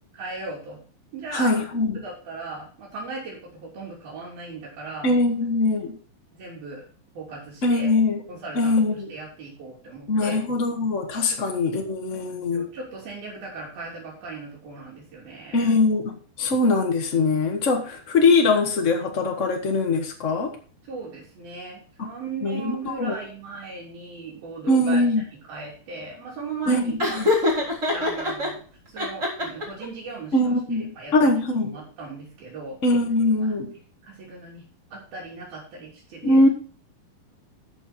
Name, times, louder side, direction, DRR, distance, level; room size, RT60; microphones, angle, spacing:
voice 1, 0.1-0.8 1.1-1.7 2.0-5.1 6.3-6.8 7.2-7.9 8.3-10.4 11.3-11.4 12.1-15.7 20.8-25.0 25.5-27.2 27.9-30.5 31.0-32.8 33.2-33.5 34.0-34.7 34.9-36.4, right 3 dB, 75° right, -4 dB, 5.3 m, -37 dB
voice 2, 1.3-2.0 5.0-6.0 7.6-8.2 8.5-9.1 10.1-12.7 15.5-20.6 22.0-22.1 22.4-23.1 24.7-25.2 26.7-27.3 30.3-31.7 32.8-33.7 36.2-36.5, left 2 dB, 65° left, 3 dB, 0.7 m, -22 dB
Laughter, 27.0-28.5 29.0-29.8, left 2 dB, 20° right, 3.9 m, -24 dB
13.0 x 6.7 x 4.4 m, 0.42 s
omnidirectional pair, 4.3 m